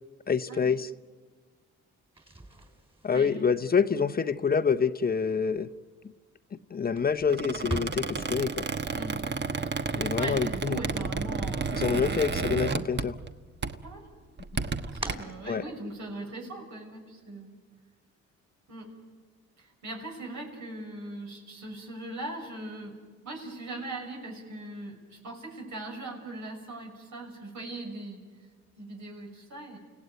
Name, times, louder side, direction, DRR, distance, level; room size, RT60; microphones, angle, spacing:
voice 1, 0.3-0.9 3.0-5.7 6.7-8.7 10.0-10.8 11.7-13.1 15.5-15.6, left 6 dB, 30° left, 12 dB, 0.8 m, -27 dB
sound 1, 2.0-12.0 12.3-13.2 13.6-16.2, right 2 dB, 20° right, 4.0 m, -44 dB
voice 2, 3.1-3.5 3.9-4.2 8.9-9.2 10.1-12.6 13.8-14.1 14.8-17.5 18.7-18.9 19.6-23.0 23.2-28.2 28.8-29.8, right 2 dB, 70° right, 1 dB, 6.3 m, -40 dB
Squeak, 7.3-13.3 13.6-13.9 14.4-15.1, right 4 dB, 35° right, 1.2 m, -31 dB
29.5 x 17.5 x 9.5 m, 1.5 s
cardioid pair, 90°, 30 cm